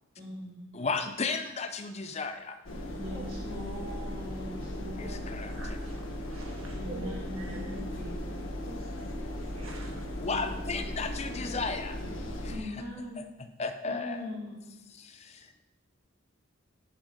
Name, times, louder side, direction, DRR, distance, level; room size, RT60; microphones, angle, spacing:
voice 1, 0.2-0.7 2.9-5.2 6.7-8.3 10.2-10.4 12.5-13.2 13.8-14.7, left 1 dB, 45° right, -5 dB, 3.4 m, -41 dB
voice 2, 0.7-2.6 5.0-5.5 10.2-12.0 12.4-12.7 13.6-14.4 14.9-15.6, left 4 dB, 30° left, 8 dB, 0.5 m, -34 dB
sound 1, 2.6-12.6, left 1 dB, 75° left, 1.4 m, -37 dB
voice 3, 3.0-3.4 5.5-8.0 8.6-10.2, right 1 dB, 80° right, 1 dB, 1.5 m, -47 dB
10.5 x 5.5 x 5.1 m, 0.96 s
head